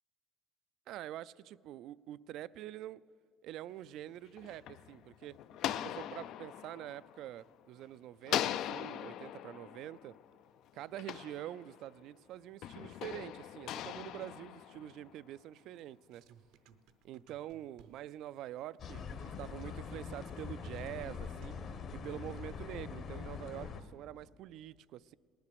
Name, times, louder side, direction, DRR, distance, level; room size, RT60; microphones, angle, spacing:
voice 1, 0.9-3.0 3.4-5.4 5.8-10.1 10.7-16.2 17.0-21.6 22.0-25.1, right 13 dB, 60° right, 19 dB, 0.3 m, -46 dB
sound 1, 4.1-7.8 8.2-12.0 12.6-15.3, left 11 dB, 60° left, 0.4 m, -41 dB
sound 2, 15.8-18.2 19.9-22.3, right 9 dB, 75° right, 0.7 m, -58 dB
sound 3, 18.8-23.8, left 6 dB, 40° left, 1.1 m, -43 dB
18.5 x 11.5 x 6.9 m, 2.2 s
cardioid pair, 165°, 0 cm